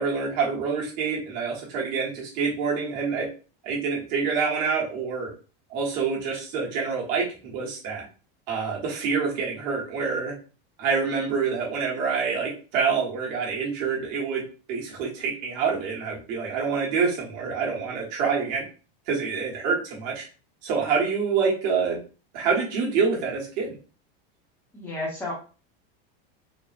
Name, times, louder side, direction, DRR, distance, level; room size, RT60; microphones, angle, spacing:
voice 1, 0.0-3.3 3.6-5.3 5.7-8.0 8.5-10.3 10.8-14.4 14.7-18.6 19.1-20.2 20.6-22.0 22.3-23.7, right 5 dB, 45° right, -3 dB, 1.2 m, -26 dB
voice 2, 24.7-25.3, left 2 dB, 5° left, -3 dB, 0.7 m, -31 dB
3.7 x 2.0 x 2.5 m, 0.35 s
supercardioid pair, 175°, 31 cm